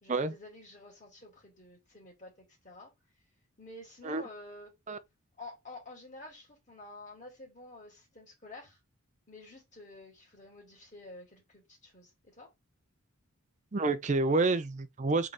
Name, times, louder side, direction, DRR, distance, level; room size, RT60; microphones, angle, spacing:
voice 1, 0.0-2.9 3.6-4.7 5.4-8.8 9.3-12.5, left 2 dB, 35° left, 2.2 m, -50 dB
voice 2, 13.7-15.3, right 3 dB, 30° right, 0.5 m, -28 dB
3.8 x 3.8 x 3.4 m
head